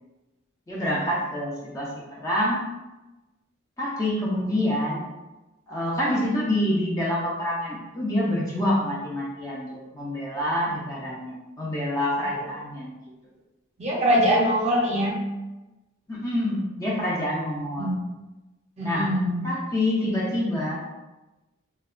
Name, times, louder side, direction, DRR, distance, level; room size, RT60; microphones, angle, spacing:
voice 1, 0.7-2.7 3.8-5.0 5.7-12.9 16.1-17.9 18.8-19.1 19.4-20.8, left 1 dB, 15° left, -5 dB, 0.4 m, -27 dB
voice 2, 13.8-15.2 17.8-18.0 18.8-19.5, equal, 30° right, -4 dB, 0.6 m, -23 dB
2.7 x 2.1 x 2.4 m, 1.1 s
head